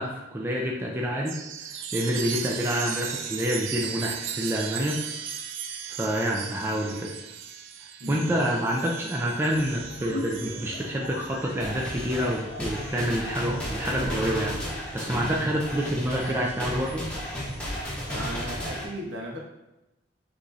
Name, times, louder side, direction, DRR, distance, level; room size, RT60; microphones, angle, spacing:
voice 1, 0.0-5.0 5.9-7.1 8.1-17.0, equal, 10° right, -2 dB, 0.5 m, -28 dB
Chime, 1.3-15.2 15.7-18.5, right 8 dB, 85° right, 0.4 m, -38 dB
voice 2, 8.0-8.3 15.1-15.3 18.1-19.4, equal, 70° right, -2 dB, 1.2 m, -36 dB
sound 1, 9.5-14.7, left 2 dB, 65° left, 0.6 m, -40 dB
sound 2, 11.6-18.9, equal, 5° left, 1.0 m, -33 dB
6.0 x 3.1 x 2.6 m, 0.96 s
head